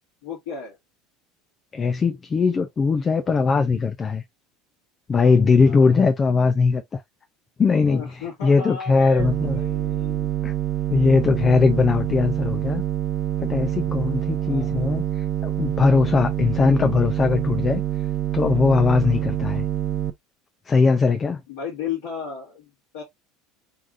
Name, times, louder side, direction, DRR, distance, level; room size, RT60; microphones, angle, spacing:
voice 1, 0.2-0.8 5.6-6.0 7.8-10.4 14.4-15.0 21.5-23.0, left 6 dB, 75° left, 2.1 m, -35 dB
voice 2, 1.7-4.2 5.1-7.0 7.6-9.6 10.4-10.5 10.9-12.8 13.4-17.8 18.3-19.6 20.7-21.4, left 4 dB, 30° left, 0.5 m, -20 dB
sound 1, 9.2-20.1, right 11 dB, 45° right, 0.4 m, -26 dB
3.9 x 3.6 x 2.6 m
hypercardioid pair, 75°, 0 cm